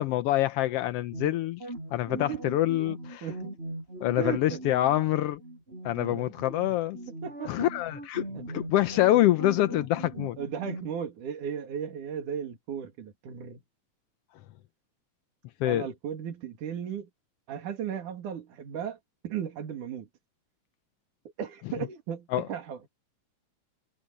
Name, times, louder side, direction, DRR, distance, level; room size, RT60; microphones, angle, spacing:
voice 1, 0.0-1.6 1.9-3.3 4.0-5.4 5.8-7.0 7.5-10.4 15.6-15.8 22.3-22.4, left 14 dB, 85° left, 1.3 m, -26 dB
sound 1, 1.1-10.9, right 1 dB, 20° right, 7.2 m, -40 dB
voice 2, 2.1-2.5 3.2-3.6 4.2-4.6 6.0-6.3 7.2-7.7 8.3-8.6 10.0-13.6 15.6-17.1 17.5-20.1 21.4-22.8, right 8 dB, 90° right, 3.8 m, -36 dB
omnidirectional pair, 3.4 m